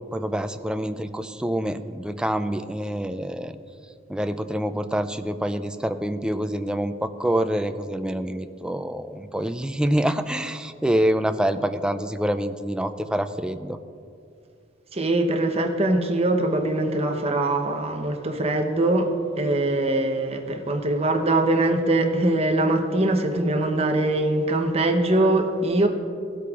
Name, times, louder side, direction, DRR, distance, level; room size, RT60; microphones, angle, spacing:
voice 1, 0.1-3.6 4.1-13.8, equal, 5° right, 9 dB, 0.3 m, -26 dB
voice 2, 14.9-19.1 19.4-25.9, right 2 dB, 35° right, 4 dB, 0.8 m, -22 dB
16.5 x 8.3 x 2.4 m, 2.4 s
head